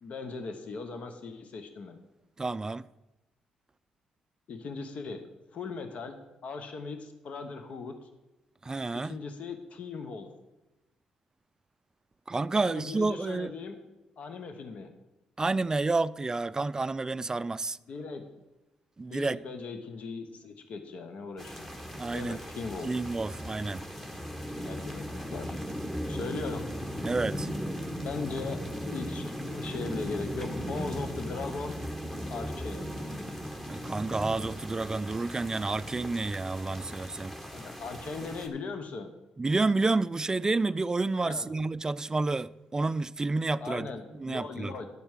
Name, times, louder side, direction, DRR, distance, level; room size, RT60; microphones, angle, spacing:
voice 1, 0.0-2.0 4.5-5.2 5.5-8.1 8.9-10.3 12.6-13.8 14.2-14.9 17.9-18.3 19.1-21.7 22.1-22.9 24.6-25.6 26.1-26.6 28.0-31.8 32.3-32.8 37.5-39.1 41.2-41.5 43.6-44.9, left 4 dB, 60° left, 1.0 m, -39 dB
voice 2, 2.4-2.9 8.6-9.2 12.3-13.5 15.4-17.8 19.0-19.4 22.0-22.4 22.8-23.8 27.0-27.5 33.7-37.3 39.4-43.9 44.2-44.7, right 3 dB, 25° right, 0.3 m, -29 dB
sound 1, 21.4-38.5, equal, 10° left, 1.5 m, -37 dB
11.0 x 4.5 x 7.4 m
supercardioid pair, 55°, 3 cm